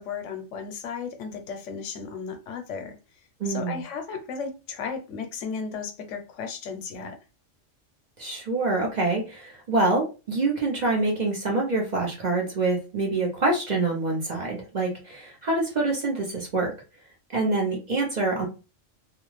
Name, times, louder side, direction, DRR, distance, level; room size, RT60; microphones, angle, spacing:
voice 1, 0.0-3.0 3.4-7.2, left 5 dB, 80° left, 0.9 m, -35 dB
voice 2, 3.4-3.8 8.2-16.7 17.3-18.5, right 3 dB, 45° right, 0.7 m, -26 dB
2.4 x 2.2 x 3.1 m
omnidirectional pair, 1.3 m